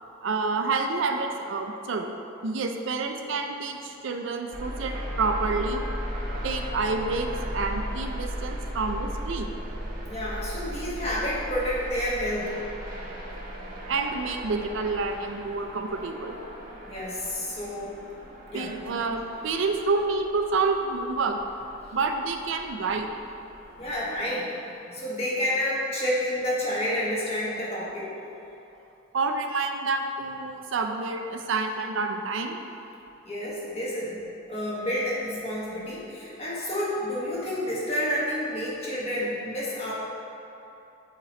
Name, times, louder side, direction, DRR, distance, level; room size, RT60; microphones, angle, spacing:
voice 1, 0.2-2.1 2.4-5.8 6.4-7.3 7.5-9.6 13.9-16.4 18.5-21.4 21.9-23.1 29.1-32.6, right 3 dB, 70° right, 5 dB, 0.4 m, -28 dB
sound 1, 4.5-24.2, equal, 45° right, 0.8 m, -37 dB
voice 2, 10.1-12.6 16.9-17.9 18.5-18.7 23.8-24.5 24.9-28.1 33.2-34.2 34.5-39.9, left 1 dB, 30° left, -7 dB, 1.3 m, -29 dB
7.6 x 3.0 x 4.2 m, 2.9 s
head